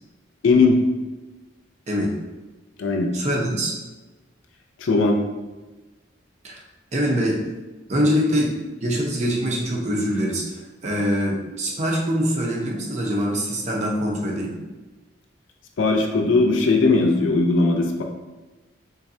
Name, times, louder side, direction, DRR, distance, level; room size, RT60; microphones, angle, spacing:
voice 1, 0.4-0.8 2.8-3.1 4.8-5.2 15.8-18.0, left 3 dB, 80° left, 2 dB, 0.4 m, -18 dB
voice 2, 3.1-3.7 6.4-6.6 6.9-7.4 7.9-8.5 8.8-14.6, equal, 35° right, -1 dB, 0.7 m, -24 dB
3.9 x 3.1 x 2.7 m, 1.2 s
head